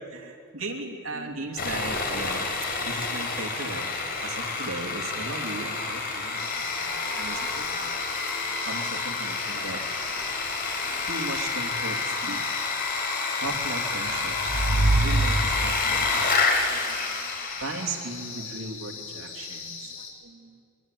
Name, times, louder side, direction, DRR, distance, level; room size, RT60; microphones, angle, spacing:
voice 1, 0.1-8.0 8.5-9.8 11.1-12.4 13.4-16.4 16.7-20.6, right 2 dB, 70° right, 2 dB, 2.9 m, -37 dB
Sawing, 1.6-18.0, left 4 dB, 45° left, 4.3 m, -29 dB
sound 1, 6.4-20.1, left 5 dB, 70° left, 5.4 m, -40 dB
sound 2, 13.8-16.1, right 2 dB, 40° right, 2.9 m, -25 dB
23.0 x 23.0 x 9.3 m, 2.3 s
head